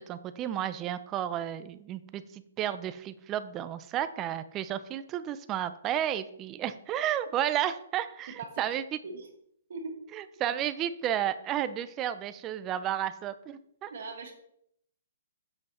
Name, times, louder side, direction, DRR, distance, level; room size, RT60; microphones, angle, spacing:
voice 1, 0.0-9.0 10.1-13.9, right 11 dB, 15° right, 12 dB, 0.4 m, -32 dB
voice 2, 13.9-14.3, right 3 dB, 50° right, 3 dB, 2.0 m, -39 dB
7.9 x 7.7 x 4.2 m, 0.73 s
hypercardioid pair, 175°, 0 cm